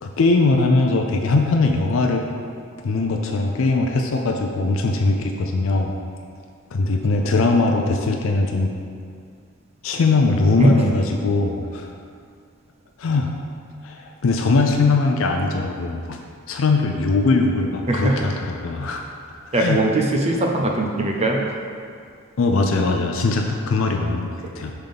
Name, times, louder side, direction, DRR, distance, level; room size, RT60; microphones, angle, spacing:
voice 1, 0.0-2.2 2.8-5.9 6.7-8.7 9.8-11.9 13.0-13.3 13.8-16.2 16.5-19.0 19.3-19.8 22.4-24.7, left 3 dB, 70° left, 3 dB, 0.4 m, -20 dB
voice 2, 17.9-18.3 19.5-21.4, right 1 dB, 30° right, 1 dB, 0.5 m, -20 dB
5.7 x 3.6 x 5.2 m, 2.3 s
head